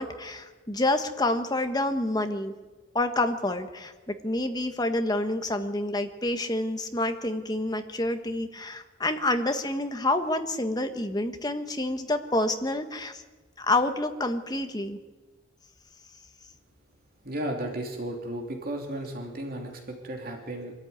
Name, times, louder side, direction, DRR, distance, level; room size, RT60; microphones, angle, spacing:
voice 1, 0.0-2.5 2.9-13.2 13.6-15.0, left 2 dB, 20° left, 7 dB, 1.3 m, -28 dB
voice 2, 17.2-20.7, right 1 dB, 45° right, 1 dB, 3.0 m, -34 dB
25.0 x 13.5 x 9.5 m, 1.3 s
head